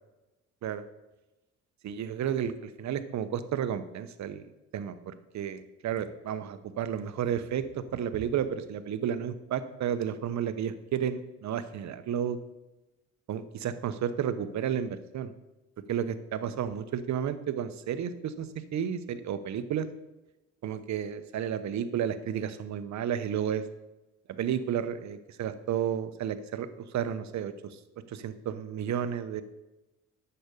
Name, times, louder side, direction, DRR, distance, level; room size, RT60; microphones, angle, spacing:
voice 1, 1.8-12.4 13.3-15.3 15.9-19.9 20.6-23.6 24.3-27.8 28.1-29.4, right 9 dB, 65° right, 12 dB, 0.9 m, -32 dB
8.6 x 6.8 x 6.7 m, 1.0 s
cardioid pair, 90°, 30 cm